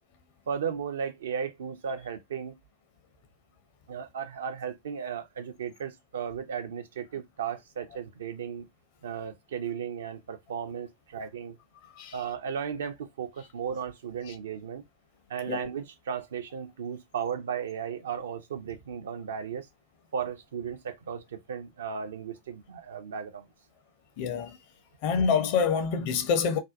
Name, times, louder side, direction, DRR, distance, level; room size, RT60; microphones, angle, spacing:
voice 1, 0.5-2.6 3.9-8.7 9.0-11.6 12.1-14.8 15.3-19.7 20.1-23.5, right 7 dB, 65° right, 0.4 m, -35 dB
voice 2, 24.2-24.6 25.0-26.6, left 6 dB, 45° left, 0.5 m, -26 dB
2.5 x 2.2 x 2.4 m
figure-of-eight pair, 90°, 0 cm